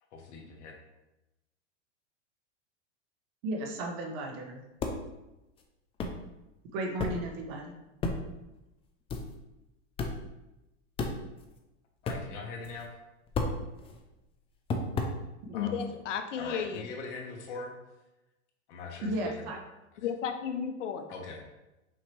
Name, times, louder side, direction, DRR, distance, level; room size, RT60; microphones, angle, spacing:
voice 1, 0.1-0.7 12.0-12.9 15.5-15.7 16.4-17.7 18.7-19.5 21.1-21.5, left 4 dB, 70° left, 1 dB, 1.2 m, -41 dB
voice 2, 3.4-4.6 6.7-7.7 15.4-15.6 19.0-19.6, right 1 dB, 55° right, 2 dB, 1.1 m, -34 dB
sound 1, 4.8-5.0 5.6-5.7 6.0-6.2 7.0-7.3 8.0-8.3 8.5-8.6 9.1-9.3 10.0-10.2 11.0-11.6 12.1-12.2 12.6-12.9 13.3-14.1 14.7-15.2, left 3 dB, 15° left, 0.4 m, -32 dB
voice 3, 15.5-16.8 20.0-21.1, left 7 dB, 85° left, 7 dB, 0.7 m, -33 dB
5.7 x 2.9 x 3.2 m, 0.97 s
supercardioid pair, 125°, 36 cm